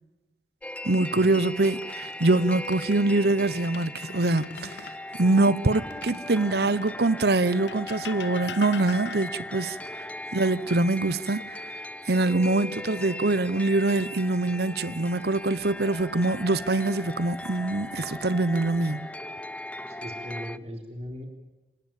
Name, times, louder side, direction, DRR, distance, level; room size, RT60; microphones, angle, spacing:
sound 1, 0.6-20.6, left 1 dB, 10° left, 0.8 m, -38 dB
voice 1, 0.8-4.8 5.2-10.1 10.3-11.6 12.1-19.1, right 2 dB, 60° right, 0.9 m, -24 dB
sound 2, 1.7-3.0 3.5-5.0 5.9-7.0 7.7-9.5 11.4-12.1 12.5-12.7 15.6-16.2 16.9-17.6, left 5 dB, 80° left, 1.6 m, -43 dB
voice 2, 19.9-21.3, equal, 35° right, 3.7 m, -38 dB
27.5 x 19.0 x 9.0 m
head